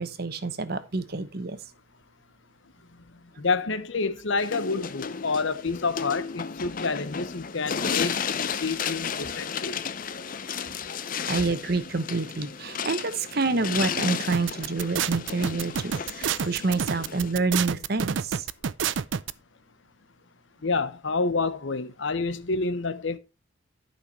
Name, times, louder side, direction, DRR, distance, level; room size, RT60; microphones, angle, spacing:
voice 1, 0.0-1.6 11.3-18.5, right 3 dB, 50° right, 1.0 m, -28 dB
voice 2, 3.4-9.8 20.6-23.2, left 4 dB, 70° left, 0.9 m, -28 dB
sound 1, 4.4-17.3, left 6 dB, 45° left, 0.6 m, -33 dB
sound 2, 14.3-19.3, right 7 dB, 70° right, 0.5 m, -28 dB
11.5 x 5.8 x 4.3 m
head